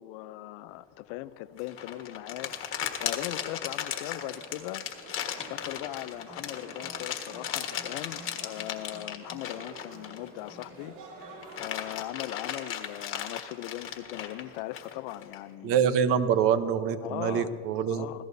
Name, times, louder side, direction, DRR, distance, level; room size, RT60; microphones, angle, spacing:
voice 1, 0.0-4.8 5.5-11.0 11.6-15.9 17.0-18.2, left 16 dB, 75° left, 15 dB, 0.6 m, -39 dB
sound 1, 1.6-10.8 11.2-15.4, left 9 dB, 45° left, 1.5 m, -36 dB
sound 2, 4.1-11.6, right 2 dB, 80° right, 2.8 m, -49 dB
voice 2, 15.6-18.1, right 8 dB, 50° right, 11 dB, 0.8 m, -25 dB
26.0 x 16.5 x 2.7 m, 2.3 s
cardioid pair, 155°, 30 cm